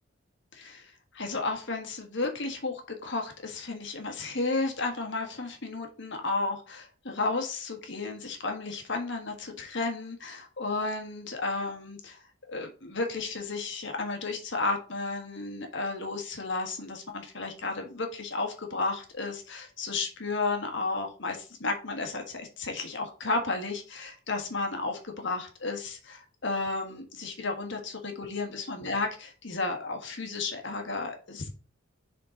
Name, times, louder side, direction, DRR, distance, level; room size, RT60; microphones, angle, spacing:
voice 1, 0.5-31.5, left 3 dB, 60° left, 4 dB, 1.4 m, -33 dB
6.7 x 3.8 x 3.8 m, 0.36 s
head